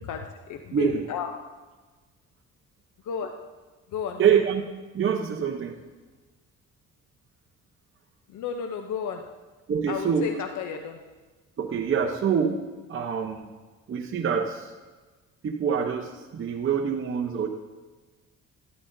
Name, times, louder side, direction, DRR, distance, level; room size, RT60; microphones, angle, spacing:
voice 1, 0.0-1.3 3.0-3.3 3.9-4.4 8.3-9.3 9.9-11.0, left 7 dB, 75° left, 5 dB, 0.7 m, -33 dB
voice 2, 0.7-1.0 4.2-4.6 4.9-5.8 9.7-10.2 11.6-12.6 12.9-13.5 13.9-14.7 15.4-17.5, right 7 dB, 45° right, 3 dB, 0.9 m, -25 dB
12.5 x 12.5 x 2.7 m, 1.3 s
cardioid pair, 90°, 30 cm